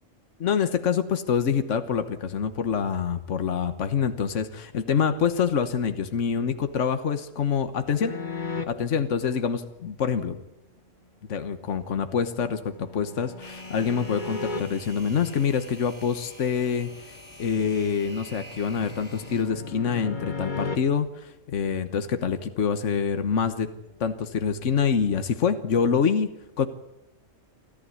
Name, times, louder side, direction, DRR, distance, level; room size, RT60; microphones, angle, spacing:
voice 1, 0.4-8.2 8.7-10.4 11.3-23.7 24.0-26.7, left 6 dB, 75° left, 9 dB, 1.5 m, -26 dB
sound 1, 8.0-8.6 12.0-14.6 17.7-20.8, left 4 dB, 40° left, 1.5 m, -36 dB
sound 2, 13.4-19.4, equal, 10° left, 6.4 m, -47 dB
24.5 x 14.5 x 9.5 m, 0.89 s
omnidirectional pair, 1.3 m